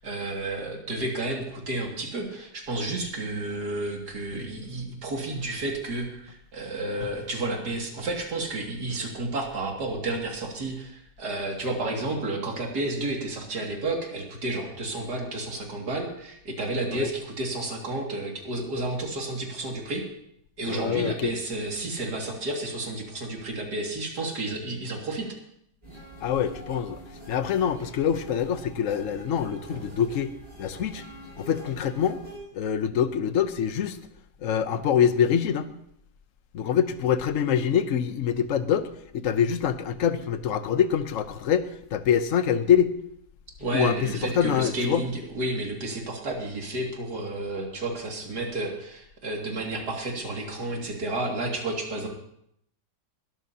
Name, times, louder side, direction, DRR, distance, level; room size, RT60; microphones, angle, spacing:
voice 1, 0.0-20.0 20.6-25.3 43.6-52.1, right 2 dB, 65° right, 0 dB, 2.9 m, -31 dB
voice 2, 20.7-21.3 26.2-27.0 27.3-30.3 30.6-31.0 31.4-32.2 32.5-34.0 34.4-35.7 36.5-38.9 39.1-43.0 43.7-45.0, left 8 dB, 55° left, 11 dB, 1.0 m, -25 dB
sound 1, 25.8-32.4, right 1 dB, 20° right, 6.6 m, -44 dB
21.0 x 12.5 x 2.8 m, 0.72 s
omnidirectional pair, 1.9 m